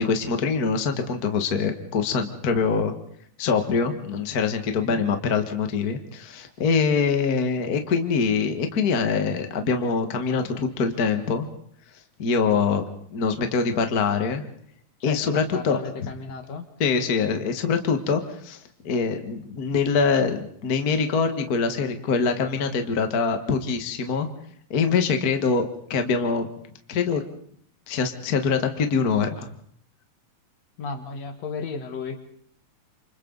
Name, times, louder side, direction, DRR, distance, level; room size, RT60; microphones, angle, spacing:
voice 1, 0.0-2.9 3.4-11.5 12.2-12.9 13.1-14.5 15.0-15.8 16.8-18.6 18.8-24.3 24.7-26.5 26.9-27.2 27.9-29.5, left 5 dB, 40° left, 6 dB, 1.6 m, -24 dB
voice 2, 15.0-16.6 30.8-32.2, left 4 dB, 60° left, 7 dB, 2.7 m, -33 dB
28.0 x 25.5 x 4.0 m, 0.63 s
omnidirectional pair, 3.5 m